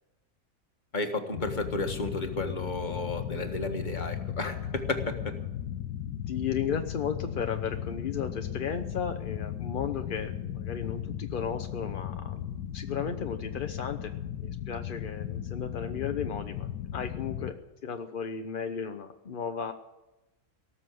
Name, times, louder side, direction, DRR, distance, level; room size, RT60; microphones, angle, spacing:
voice 1, 0.9-5.3, left 2 dB, 30° left, 5 dB, 1.5 m, -32 dB
sound 1, 1.3-17.5, left 10 dB, 80° left, 1.3 m, -36 dB
voice 2, 6.3-14.1 14.4-17.6 17.8-19.7, left 7 dB, 45° left, 6 dB, 0.7 m, -35 dB
18.0 x 7.0 x 9.4 m, 1.0 s
omnidirectional pair, 1.7 m